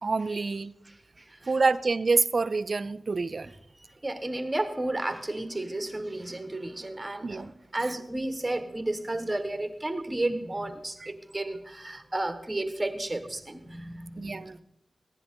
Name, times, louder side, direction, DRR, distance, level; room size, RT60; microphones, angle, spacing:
voice 1, 0.0-0.7 1.5-3.5 7.2-7.5 7.8-7.9 11.0-11.1 14.2-14.6, right 4 dB, 65° right, 16 dB, 0.5 m, -27 dB
voice 2, 4.0-7.5 7.7-14.6, right 2 dB, 25° right, 9 dB, 1.3 m, -32 dB
15.5 x 10.0 x 3.8 m, 0.81 s
cardioid pair, 40°, 0 cm